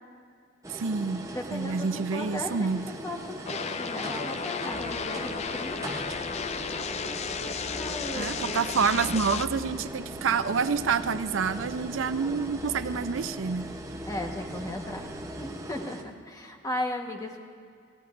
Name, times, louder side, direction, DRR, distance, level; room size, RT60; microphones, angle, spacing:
sound 1, 0.6-16.0, right 1 dB, 15° right, 0.9 m, -40 dB
voice 1, 0.7-1.2 1.5-2.8 8.1-13.7, right 5 dB, 80° right, 11 dB, 0.6 m, -28 dB
voice 2, 1.3-5.8 6.3-7.2 7.7-8.6 14.1-15.1 15.4-17.4, left 1 dB, 20° left, 2 dB, 1.3 m, -37 dB
sound 2, 3.5-9.5, left 5 dB, 35° left, 0.4 m, -33 dB
sound 3, 4.7-15.2, left 1 dB, 55° right, 4.2 m, -47 dB
30.0 x 15.5 x 2.6 m, 2.1 s
head